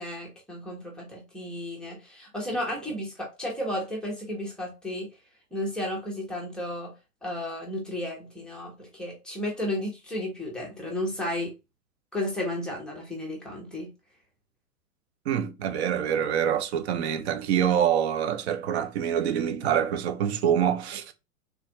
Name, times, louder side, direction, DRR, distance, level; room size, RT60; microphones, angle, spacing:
voice 1, 0.0-5.1 5.5-6.9 7.2-11.5 12.1-13.9, left 1 dB, ahead, 0.5 m, -33 dB
voice 2, 15.3-21.1, right 9 dB, 45° right, 0.5 m, -25 dB
3.4 x 2.4 x 2.8 m
hypercardioid pair, 115°, 46 cm